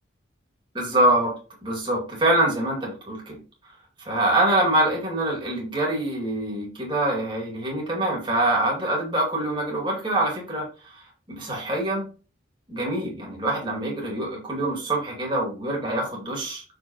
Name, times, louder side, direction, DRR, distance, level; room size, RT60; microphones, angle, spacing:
voice 1, 0.7-1.3 1.6-3.4 4.0-11.0 11.3-12.1 12.7-16.6, right 1 dB, 25° right, -2 dB, 2.3 m, -25 dB
6.4 x 5.0 x 2.9 m, 0.36 s
head